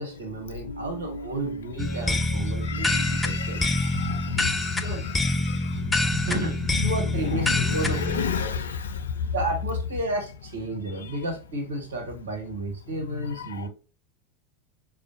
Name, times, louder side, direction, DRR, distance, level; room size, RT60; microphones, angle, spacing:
voice 1, 0.0-3.6 4.8-5.0 5.7-5.8 6.3-8.0 8.3-8.5 9.3-13.7, right 1 dB, 70° right, 0.9 m, -32 dB
voice 2, 0.6-1.7 2.6-6.3 7.4-9.3 13.4-13.5, left 6 dB, 70° left, 0.4 m, -32 dB
sound 1, 1.8-8.3, left 2 dB, 10° left, 0.4 m, -26 dB
4.9 x 2.3 x 2.6 m
figure-of-eight pair, 80°, 0 cm